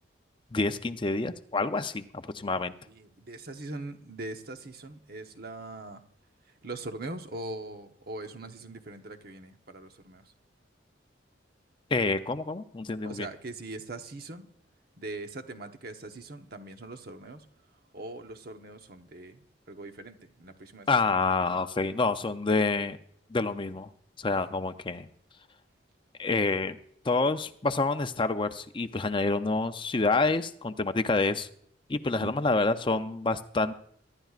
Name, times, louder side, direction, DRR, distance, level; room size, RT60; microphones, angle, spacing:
voice 1, 0.5-2.7 11.9-13.3 20.9-23.0 23.3-23.9 24.2-25.1 26.2-26.8 27.1-31.5 31.9-33.7, left 3 dB, 25° left, 10 dB, 0.5 m, -27 dB
voice 2, 2.9-6.0 6.6-10.2 13.0-14.5 15.0-17.4 17.9-20.9 32.2-32.6, right 2 dB, 55° right, 6 dB, 1.0 m, -41 dB
23.5 x 11.5 x 2.4 m, 0.66 s
head